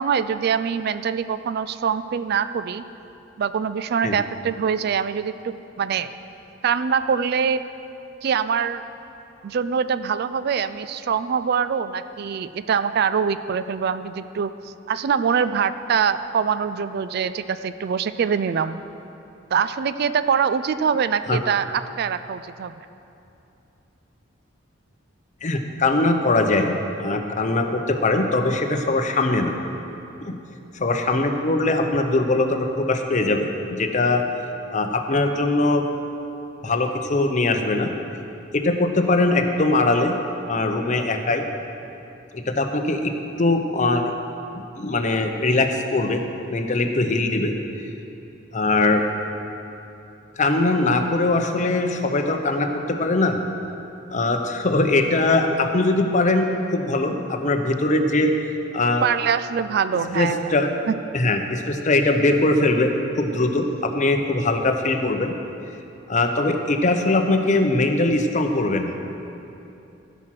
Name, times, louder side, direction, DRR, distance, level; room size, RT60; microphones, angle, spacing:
voice 1, 0.0-2.8 3.4-5.3 5.8-6.1 6.6-7.6 8.2-8.8 9.4-18.8 19.5-22.7 59.0-60.5 60.9-61.0, right 7 dB, 55° right, 13 dB, 0.3 m, -24 dB
voice 2, 25.4-29.5 30.2-30.3 30.7-34.2 34.7-35.9 36.6-37.9 38.5-40.1 40.5-41.5 42.3-43.1 43.4-44.1 44.8-47.5 48.5-49.0 50.4-53.4 54.1-58.3 58.7-59.0 60.1-60.7 61.1-62.9 63.2-65.3 66.1-69.0, left 2 dB, 40° left, 5 dB, 0.8 m, -21 dB
15.5 x 6.1 x 5.9 m, 2.8 s
head